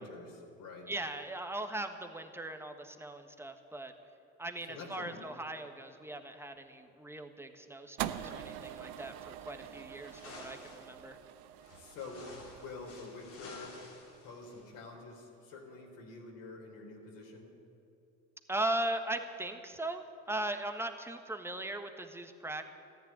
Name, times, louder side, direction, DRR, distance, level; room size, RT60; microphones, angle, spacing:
voice 1, 0.0-0.9 4.6-5.2 11.7-13.8 14.2-17.5, left 3 dB, 65° left, 1 dB, 3.8 m, -47 dB
voice 2, 0.9-3.9 4.4-11.2 18.5-22.6, right 1 dB, 5° right, 6 dB, 1.5 m, -39 dB
sound 1, 8.0-14.3, right 11 dB, 75° right, 0.9 m, -44 dB
sound 2, 10.0-10.9 11.6-14.7, left 3 dB, 85° left, 3.6 m, -52 dB
14.0 x 10.5 x 9.7 m, 2.7 s
hypercardioid pair, 75°, 36 cm